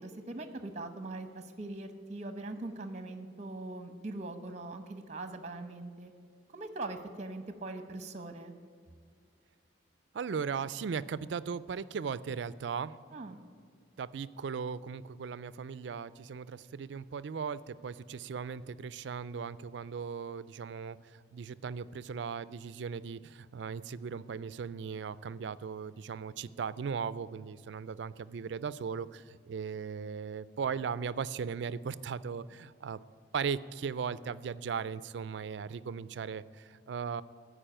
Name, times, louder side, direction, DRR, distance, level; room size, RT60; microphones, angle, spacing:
voice 1, 0.0-6.1 6.5-8.5 13.1-13.4, right 2 dB, 35° right, 8 dB, 0.9 m, -41 dB
voice 2, 10.1-12.9 14.0-21.0 21.3-33.0 33.3-37.2, right 6 dB, 65° right, 17 dB, 0.4 m, -37 dB
15.0 x 5.0 x 8.9 m, 2.1 s
head